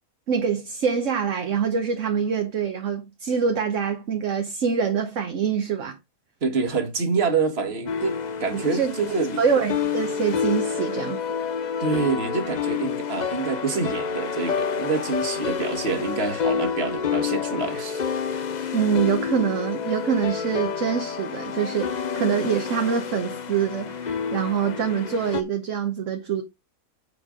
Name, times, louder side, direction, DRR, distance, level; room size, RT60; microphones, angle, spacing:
voice 1, 0.3-6.0 8.5-8.9 9.4-11.2 18.7-26.4, right 7 dB, 60° right, 1.3 m, -25 dB
voice 2, 6.4-9.4 11.8-18.0, right 4 dB, 45° right, 1.7 m, -26 dB
sound 1, 7.9-25.4, left 6 dB, 50° left, 0.5 m, -29 dB
8.2 x 4.5 x 5.0 m
omnidirectional pair, 1.5 m